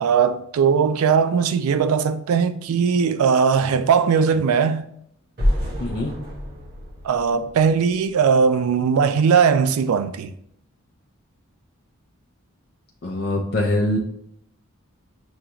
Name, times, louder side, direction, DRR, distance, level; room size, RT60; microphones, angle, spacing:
voice 1, 0.0-4.9 7.0-10.3, right 6 dB, 85° right, 0.3 m, -19 dB
sound 1, 5.4-8.4, equal, 50° right, 1.2 m, -27 dB
voice 2, 5.8-6.1 13.0-14.0, left 1 dB, 50° left, 0.4 m, -23 dB
6.2 x 2.3 x 2.8 m
head